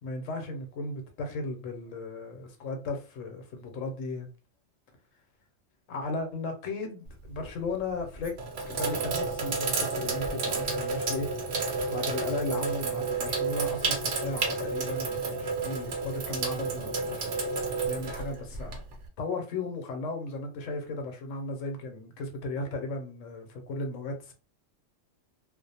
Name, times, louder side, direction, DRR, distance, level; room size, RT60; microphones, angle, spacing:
voice 1, 0.0-4.3 5.9-8.3 8.7-17.3 17.9-18.8 19.2-24.3, left 2 dB, 80° left, 1.0 m, -36 dB
Sink (filling or washing), 7.1-7.5 8.1-19.1, right 4 dB, 70° right, 0.9 m, -31 dB
2.5 x 2.0 x 2.7 m
omnidirectional pair, 1.3 m